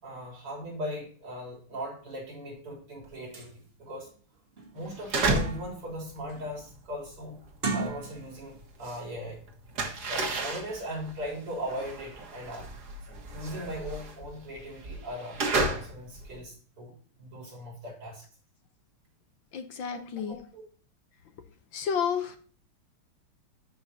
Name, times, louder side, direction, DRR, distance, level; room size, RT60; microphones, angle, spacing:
voice 1, 0.0-4.1 4.7-7.4 7.7-9.4 10.1-12.7 13.3-16.9 17.2-18.2 19.9-20.6, equal, 80° right, -2 dB, 4.6 m, -39 dB
sound 1, 3.0-3.1 3.3-3.5 4.0-4.1 4.6-5.9 6.3-6.6 7.5-8.5 8.8-9.0, right 3 dB, 30° right, 1.3 m, -36 dB
sound 2, 4.9-5.7 6.0-8.9 9.2-16.4, right 3 dB, 50° right, 1.9 m, -32 dB
voice 2, 19.5-20.4 21.7-22.4, left 7 dB, 65° left, 8 dB, 1.5 m, -30 dB
12.5 x 5.2 x 2.8 m, 0.42 s
omnidirectional pair, 2.4 m